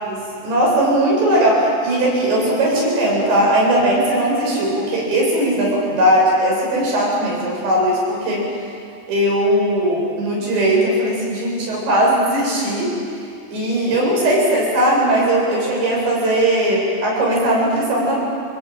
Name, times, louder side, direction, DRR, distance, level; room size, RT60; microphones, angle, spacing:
voice 1, 0.0-8.4 9.1-12.9 13.5-18.2, right 1 dB, 70° right, -4 dB, 9.7 m, -18 dB
27.0 x 21.0 x 9.2 m, 2.4 s
omnidirectional pair, 5.3 m